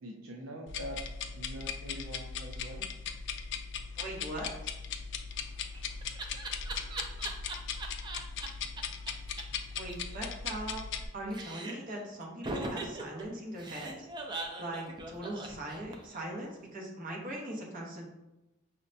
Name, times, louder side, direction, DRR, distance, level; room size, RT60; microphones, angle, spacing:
voice 1, 0.0-1.0 1.3-2.9, equal, 85° right, 0 dB, 0.5 m, -44 dB
sound 1, 0.7-11.1, left 6 dB, 60° left, 0.3 m, -39 dB
voice 2, 4.0-4.5 9.8-10.8 11.1-14.1 14.6-18.1, right 1 dB, 45° right, -2 dB, 0.9 m, -40 dB
Laughter, 5.4-8.5 8.8-8.9 9.1-9.2 9.4-9.5 9.7-11.0 11.3-11.9 12.4-16.2, right 2 dB, 20° right, 0.4 m, -40 dB
5.7 x 2.1 x 2.6 m, 1.0 s
head